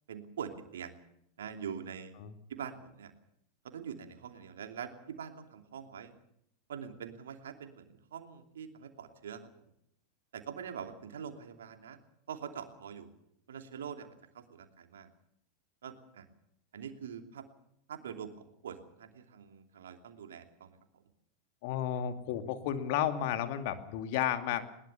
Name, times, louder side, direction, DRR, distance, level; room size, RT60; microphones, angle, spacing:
voice 1, 0.1-1.0 1.4-2.1 2.5-3.1 3.6-6.1 6.7-9.6 10.3-12.0 12.3-13.1 13.5-15.1 15.8-16.3 16.7-17.4 17.9-21.0, right 7 dB, 65° right, 7 dB, 2.9 m, -44 dB
voice 2, 21.6-24.6, left 10 dB, 50° left, 8 dB, 2.4 m, -32 dB
21.5 x 21.0 x 7.0 m, 0.75 s
figure-of-eight pair, 90°, 0 cm